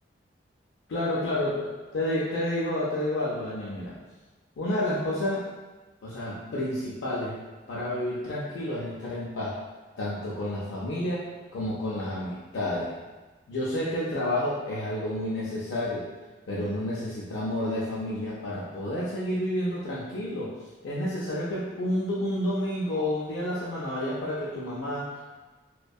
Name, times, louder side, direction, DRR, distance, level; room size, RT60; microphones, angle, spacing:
voice 1, 0.9-1.7 1.9-4.0 4.6-5.5 6.0-7.4 7.7-9.5 10.0-11.2 11.5-12.9 13.5-16.0 16.5-20.5 20.8-25.2, left 1 dB, 90° left, -7 dB, 0.4 m, -30 dB
2.5 x 2.2 x 2.2 m, 1.2 s
head